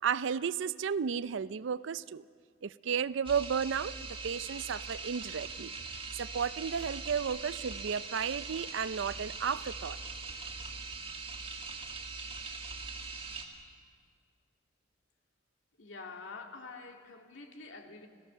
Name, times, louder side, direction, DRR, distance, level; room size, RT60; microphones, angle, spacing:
voice 1, 0.0-2.2 2.6-4.0 4.2-5.7 6.1-10.0, right 7 dB, 70° right, 17 dB, 0.5 m, -33 dB
sound 1, 3.3-13.5, right 4 dB, 30° right, 2.1 m, -42 dB
voice 2, 15.8-18.1, left 4 dB, 75° left, 3 dB, 2.2 m, -47 dB
29.0 x 17.0 x 6.8 m, 2.1 s
head